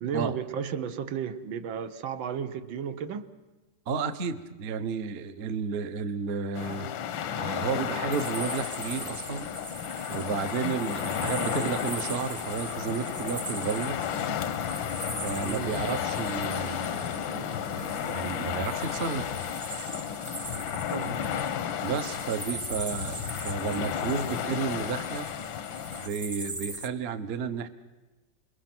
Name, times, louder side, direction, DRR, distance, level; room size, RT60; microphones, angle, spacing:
voice 1, 0.0-3.3 11.4-11.7 15.4-15.8 20.9-21.5, right 7 dB, 80° right, 9 dB, 1.8 m, -34 dB
voice 2, 3.9-6.9 7.4-9.5 10.1-14.0 15.2-19.3 21.8-25.3 26.0-27.7, right 6 dB, 45° right, 10 dB, 0.9 m, -32 dB
sound 1, 6.5-26.1, left 9 dB, 80° left, 1.7 m, -33 dB
sound 2, 8.1-26.9, right 1 dB, 15° right, 0.8 m, -41 dB
28.5 x 21.5 x 6.1 m, 1.1 s
omnidirectional pair, 2.1 m